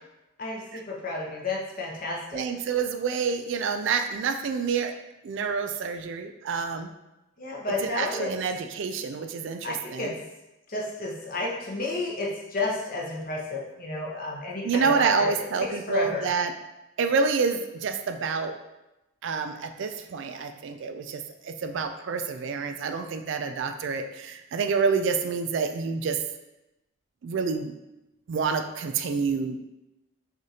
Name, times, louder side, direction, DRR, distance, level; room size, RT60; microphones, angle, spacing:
voice 1, 0.4-2.4 7.4-8.3 9.6-10.1 10.7-15.3 15.9-16.3, left 2 dB, 40° left, -3 dB, 0.8 m, -31 dB
voice 2, 2.3-4.9 5.2-6.9 7.8-10.1 14.6-16.5 17.0-18.5 19.2-26.2 27.2-27.7 28.3-29.6, right 5 dB, 60° right, 7 dB, 0.3 m, -28 dB
6.2 x 2.5 x 2.8 m, 0.94 s
head